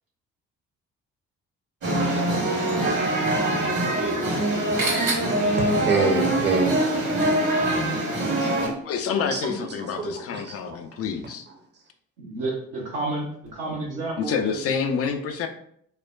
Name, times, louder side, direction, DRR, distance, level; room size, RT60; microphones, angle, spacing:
sound 1, 1.8-8.7, right 1 dB, 50° right, 1.3 m, -23 dB
voice 1, 5.6-6.7 9.3-10.8, right 3 dB, 30° right, 0.8 m, -26 dB
voice 2, 8.8-11.5 14.2-15.5, left 6 dB, 40° left, 0.5 m, -27 dB
voice 3, 12.2-14.7, right 2 dB, 70° right, 1.0 m, -31 dB
4.4 x 2.1 x 2.3 m
figure-of-eight pair, 40°, 38 cm